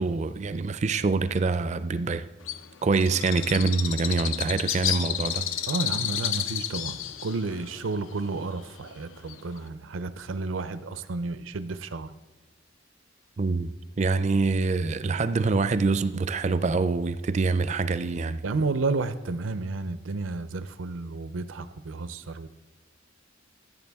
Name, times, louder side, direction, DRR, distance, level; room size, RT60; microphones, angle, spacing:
voice 1, 0.0-2.3 2.8-5.5 13.4-18.4, right 3 dB, 35° right, 0.4 m, -25 dB
Bird, 2.5-9.7, left 10 dB, 85° left, 0.5 m, -32 dB
voice 2, 5.7-12.1 18.4-22.5, right 3 dB, 85° right, 0.6 m, -31 dB
15.0 x 8.1 x 3.5 m
head